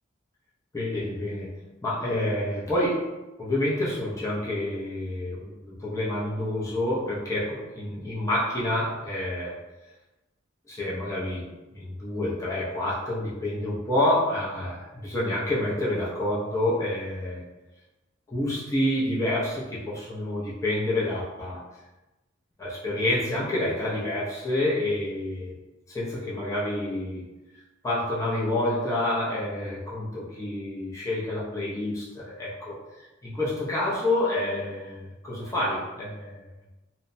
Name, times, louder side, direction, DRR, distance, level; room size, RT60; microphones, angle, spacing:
voice 1, 0.7-9.6 10.7-17.4 18.3-21.6 22.6-25.5 25.9-27.2 27.8-32.8 33.2-36.4, left 1 dB, 15° left, -7 dB, 0.5 m, -28 dB
2.8 x 2.0 x 2.5 m, 1.0 s
head